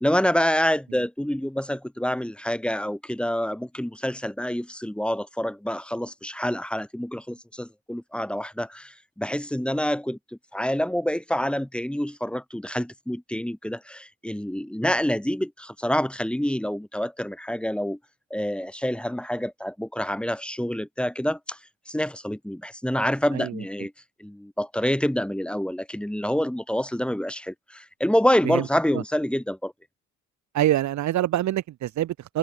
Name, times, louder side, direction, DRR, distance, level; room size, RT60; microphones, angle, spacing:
voice 1, 0.0-10.2 10.5-18.0 18.3-21.6 21.9-23.9 24.2-29.7, equal, 5° left, 2.3 m, -27 dB
voice 2, 23.3-23.6 28.4-28.6 28.9-29.0 30.5-32.4, right 13 dB, 65° right, 0.9 m, -25 dB
cardioid pair, 90°, 30 cm